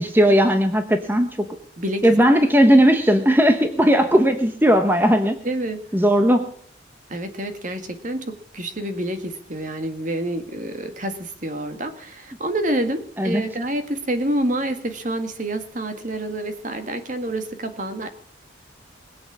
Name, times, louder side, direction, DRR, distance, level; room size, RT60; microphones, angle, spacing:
voice 1, 0.0-1.5 2.0-5.4 5.9-6.5 13.2-13.4, equal, 10° right, 6 dB, 0.9 m, -17 dB
voice 2, 1.8-2.1 5.4-5.8 7.1-18.1, right 1 dB, 40° right, 7 dB, 1.8 m, -28 dB
21.0 x 7.9 x 7.4 m, 0.62 s
head